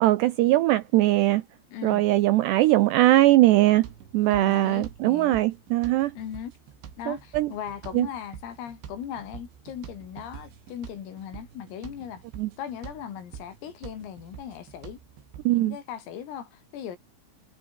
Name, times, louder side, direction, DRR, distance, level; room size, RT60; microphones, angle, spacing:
voice 1, 0.0-1.4 1.8-3.9 4.1-6.1 7.1-7.5 7.9-8.1 12.4-12.5 15.5-15.8, right 16 dB, 85° right, 2.4 m, -20 dB
voice 2, 1.7-2.0 4.3-5.4 6.2-6.5 7.0-12.2 12.6-15.0 15.5-17.0, left 9 dB, 85° left, 6.1 m, -38 dB
sound 1, 3.8-15.5, right 9 dB, 65° right, 5.4 m, -46 dB
omnidirectional pair, 5.8 m